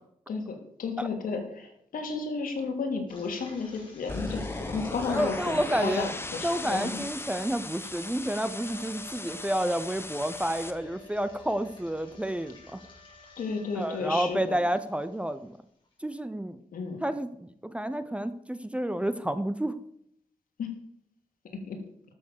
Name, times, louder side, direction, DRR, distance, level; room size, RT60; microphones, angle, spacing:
voice 1, 0.3-7.0 13.4-14.6 16.7-17.1 20.6-20.7 21.7-21.8, left 4 dB, 80° left, 3 dB, 2.9 m, -33 dB
sound 1, 3.1-15.9, left 2 dB, 35° left, 5.3 m, -54 dB
sound 2, 4.1-10.7, left 2 dB, 15° left, 1.0 m, -38 dB
voice 2, 5.1-6.1 6.4-12.8 13.7-15.6 16.0-16.6 17.0-19.8, right 1 dB, 10° right, 12 dB, 0.7 m, -30 dB
Wind instrument woodwind instrument, 8.0-14.5, left 2 dB, 55° left, 5.0 m, -52 dB
13.0 x 7.0 x 6.7 m, 0.71 s
wide cardioid pair, 125°, 14 cm